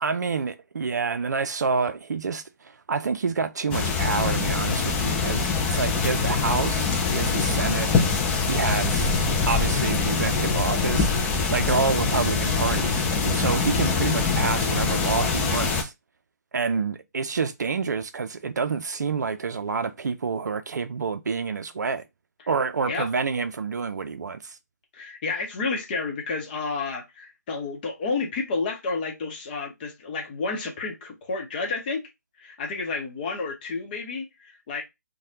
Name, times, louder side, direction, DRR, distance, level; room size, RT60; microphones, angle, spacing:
voice 1, 0.0-7.9 8.5-9.1 9.5-15.9 16.5-22.0 22.5-24.6, right 5 dB, 65° right, 0.5 m, -28 dB
sound 1, 3.7-15.8, left 4 dB, 10° left, 0.3 m, -24 dB
voice 2, 24.9-32.1 32.4-34.8, left 4 dB, 30° left, 0.8 m, -30 dB
3.1 x 2.2 x 2.7 m
figure-of-eight pair, 150°, 10 cm